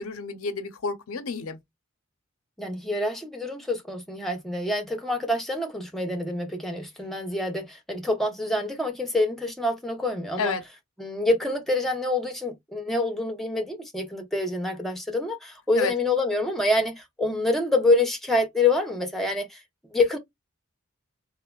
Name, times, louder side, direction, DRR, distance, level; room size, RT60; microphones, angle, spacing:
voice 1, 0.0-1.6 10.4-10.6 15.8-15.9, left 4 dB, 90° left, 0.6 m, -30 dB
voice 2, 2.6-10.5 11.0-19.6 19.9-20.2, left 2 dB, ahead, 0.7 m, -26 dB
3.5 x 2.0 x 2.2 m
head